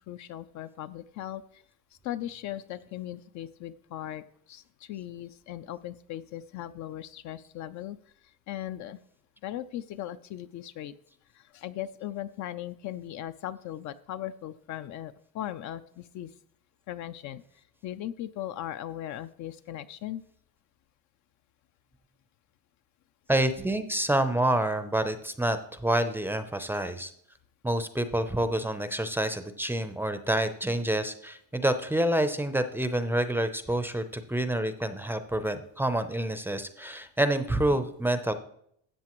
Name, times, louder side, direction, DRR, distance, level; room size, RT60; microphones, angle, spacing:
voice 1, 0.1-1.6 2.0-8.0 8.5-9.0 9.4-10.9 11.3-16.3 16.9-17.4 17.8-20.2, left 12 dB, 50° left, 13 dB, 0.5 m, -38 dB
voice 2, 23.3-27.1 27.6-38.3, right 1 dB, 5° right, 10 dB, 0.5 m, -28 dB
13.5 x 7.8 x 3.0 m, 0.69 s
cardioid pair, 135°, 37 cm